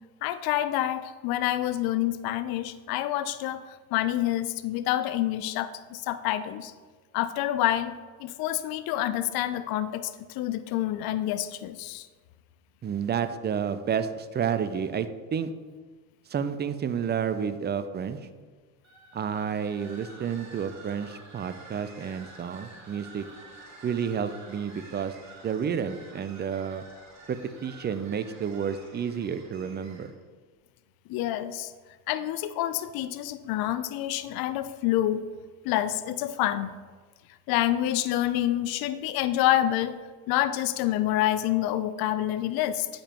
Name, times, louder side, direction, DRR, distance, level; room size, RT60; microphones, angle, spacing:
voice 1, 0.2-6.7 7.1-7.9 8.2-12.1 31.1-31.7 32.1-35.2 35.6-36.7 37.5-39.9 40.3-42.9, left 13 dB, 60° left, 12 dB, 0.5 m, -27 dB
voice 2, 12.8-15.5 16.3-18.2 19.1-23.3 23.8-25.1 25.4-26.8 27.3-30.1, right 7 dB, 25° right, 11 dB, 0.4 m, -30 dB
sound 1, 18.8-30.2, right 2 dB, 40° right, 1.8 m, -49 dB
8.5 x 5.1 x 3.0 m, 1.4 s
supercardioid pair, 80°, 41 cm